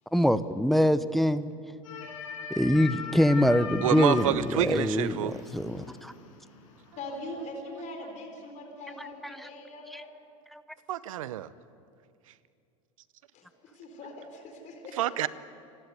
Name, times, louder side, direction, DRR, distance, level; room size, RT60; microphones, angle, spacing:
voice 1, 0.1-1.5 2.5-6.1 9.2-9.5 9.9-10.0 10.5-10.6, equal, ahead, 13 dB, 0.8 m, -24 dB
sound 1, 1.8-6.7 7.1-7.2, left 6 dB, 80° left, 5.7 m, -39 dB
voice 2, 3.8-5.4 10.9-11.5 15.0-15.3, right 12 dB, 80° right, 17 dB, 0.7 m, -28 dB
voice 3, 7.0-10.1 13.3-15.1, left 1 dB, 45° left, 3 dB, 4.1 m, -42 dB
28.0 x 12.0 x 8.2 m, 2.4 s
hypercardioid pair, 90°, 17 cm